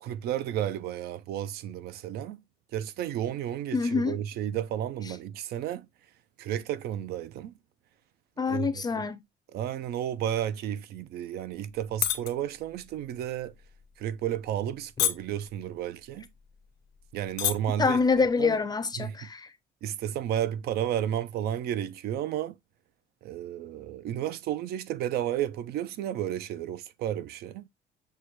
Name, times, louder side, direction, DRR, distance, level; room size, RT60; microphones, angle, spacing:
voice 1, 0.0-2.4 2.7-5.9 6.4-7.5 8.5-9.1 9.5-13.5 14.0-16.3 17.1-18.0 18.4-18.6 19.0-19.3 19.8-22.6 23.2-27.7, right 11 dB, 70° right, 0.4 m, -32 dB
voice 2, 3.7-4.1 8.4-9.2 17.8-19.5, left 4 dB, 25° left, 0.4 m, -26 dB
sound 1, 11.8-12.3 12.7-13.0 13.6-13.8 14.5-14.7 15.0-15.5 16.2-16.3 16.6-16.7 17.2-17.5 17.9-18.1, left 12 dB, 85° left, 0.7 m, -26 dB
6.4 x 2.2 x 2.9 m
cardioid pair, 110°, 17 cm